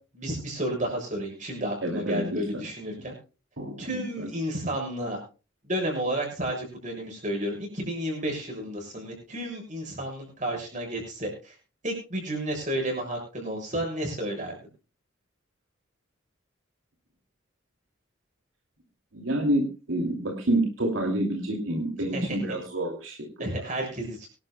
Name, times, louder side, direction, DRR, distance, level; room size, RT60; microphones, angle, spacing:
voice 1, 0.1-3.1 3.8-5.2 5.6-11.5 11.8-14.5 22.1-22.6 23.4-24.3, right 1 dB, 40° right, 1 dB, 7.0 m, -31 dB
voice 2, 1.8-2.6 3.6-4.3 19.1-23.3, right 1 dB, 80° right, 2 dB, 2.6 m, -28 dB
24.0 x 12.0 x 2.2 m, 0.33 s
head